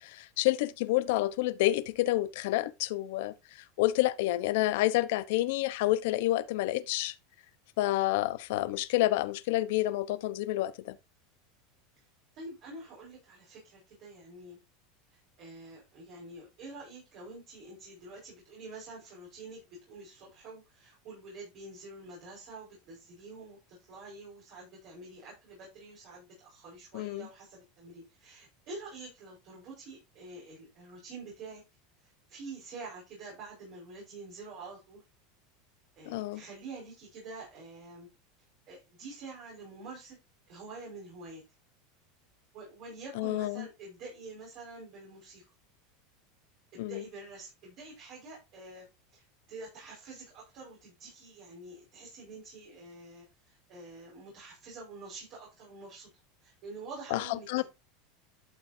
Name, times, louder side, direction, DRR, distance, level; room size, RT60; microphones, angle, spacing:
voice 1, 0.0-3.3 3.8-7.1 7.8-11.0 26.9-27.3 36.1-36.4 43.2-43.7 46.8-47.0 57.1-57.2 57.5-57.6, left 16 dB, 65° left, 1.0 m, -29 dB
voice 2, 12.3-14.6 15.1-31.6 32.0-35.0 36.0-38.1 38.7-40.2 40.5-41.4 42.5-45.4 46.7-48.9 49.1-56.1 56.4-57.6, right 3 dB, 45° right, 5.5 m, -47 dB
12.5 x 7.2 x 2.8 m
supercardioid pair, 155°, 0 cm